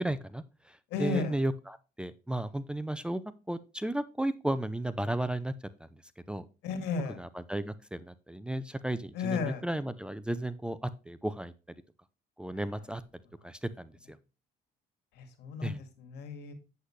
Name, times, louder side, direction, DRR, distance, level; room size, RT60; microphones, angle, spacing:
voice 1, 0.0-3.2 3.5-5.5 6.3-6.4 7.2-11.5 12.4-13.0 13.4-13.9 15.6-15.8, right 1 dB, 5° right, 14 dB, 0.6 m, -34 dB
voice 2, 0.9-1.4 6.6-7.2 9.1-9.6 15.2-16.5, left 4 dB, 85° left, 8 dB, 2.3 m, -34 dB
8.0 x 8.0 x 3.2 m, 0.31 s
cardioid pair, 110°, 17 cm